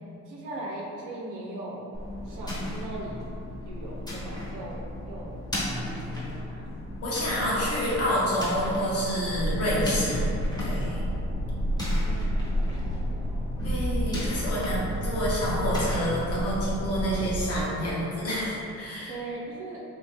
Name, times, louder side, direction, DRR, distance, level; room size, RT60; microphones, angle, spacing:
voice 1, 0.3-3.2 3.6-5.3 5.7-6.7 11.8-13.4 19.1-19.8, right 2 dB, 85° right, -4 dB, 0.8 m, -40 dB
sound 1, 1.9-17.2, left 1 dB, 15° left, 1.1 m, -35 dB
voice 2, 7.0-10.2 10.6-11.1 13.6-19.1, equal, 55° left, -7 dB, 1.1 m, -28 dB
sound 2, 9.3-17.6, right 1 dB, 45° right, 0.4 m, -30 dB
3.1 x 2.8 x 3.0 m, 2.7 s
cardioid pair, 90°, 30 cm